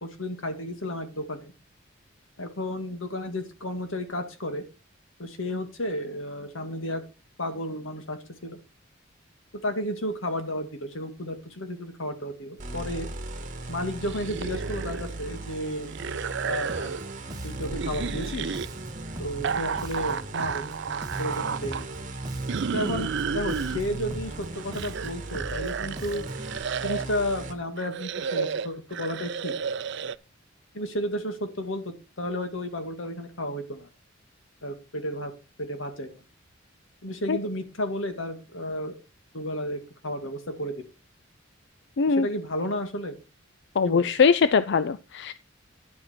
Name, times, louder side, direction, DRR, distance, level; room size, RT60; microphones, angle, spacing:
voice 1, 0.0-1.5 2.4-4.7 5.2-7.0 7.4-8.6 9.6-13.1 13.7-15.9 16.4-16.9 17.4-18.6 19.2-20.7 21.2-21.9 22.7-26.2 26.8-29.5 30.7-33.9 34.6-35.3 35.6-36.1 37.0-39.0 39.3-40.7 42.1-43.2 43.8-44.1, equal, 85° left, 7 dB, 2.0 m, -32 dB
sound 1, 12.6-27.5, right 2 dB, 40° right, 1.6 m, -38 dB
sound 2, 14.0-15.2 15.4-17.1 17.7-18.7 19.4-21.8 22.5-23.8 24.4-27.2 27.8-30.2, right 6 dB, 60° right, 0.5 m, -32 dB
Bass guitar, 16.7-26.6, right 1 dB, 20° right, 1.2 m, -41 dB
voice 2, 43.8-45.3, left 5 dB, 60° left, 14 dB, 0.5 m, -21 dB
10.5 x 7.8 x 4.4 m, 0.30 s
head